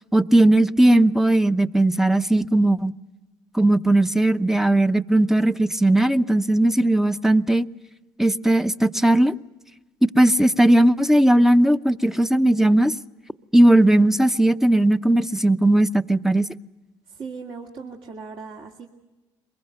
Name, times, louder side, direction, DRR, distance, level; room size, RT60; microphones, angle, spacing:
voice 1, 0.1-2.9 3.5-7.7 8.2-9.3 10.0-12.9 13.5-16.5, right 1 dB, 5° right, 11 dB, 0.7 m, -18 dB
voice 2, 17.1-18.9, right 5 dB, 55° right, 0 dB, 2.4 m, -38 dB
23.0 x 21.5 x 8.0 m, 1.1 s
supercardioid pair, 75°, 11 cm